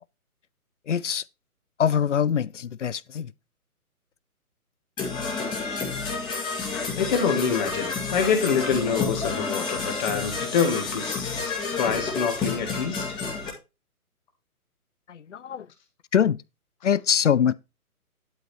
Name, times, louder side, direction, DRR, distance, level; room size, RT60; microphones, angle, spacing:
voice 1, 0.9-1.2 1.8-3.3 15.1-15.7 16.1-16.4 16.8-17.5, left 8 dB, 55° left, 0.5 m, -23 dB
Percussion / Brass instrument, 5.0-13.5, left 4 dB, 10° left, 2.1 m, -30 dB
voice 2, 7.0-13.0, left 6 dB, 30° left, 2.0 m, -26 dB
11.5 x 4.9 x 4.3 m
figure-of-eight pair, 135°, 45 cm